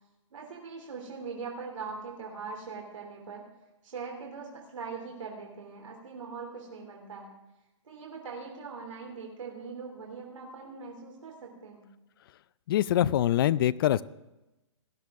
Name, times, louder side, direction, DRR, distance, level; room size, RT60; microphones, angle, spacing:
voice 1, 0.3-3.4 3.8-7.4 7.8-11.9, right 5 dB, 85° right, 0 dB, 2.9 m, -41 dB
voice 2, 12.7-14.0, left 12 dB, 45° left, 19 dB, 0.4 m, -24 dB
18.5 x 11.5 x 3.6 m, 1.0 s
hypercardioid pair, 155°, 16 cm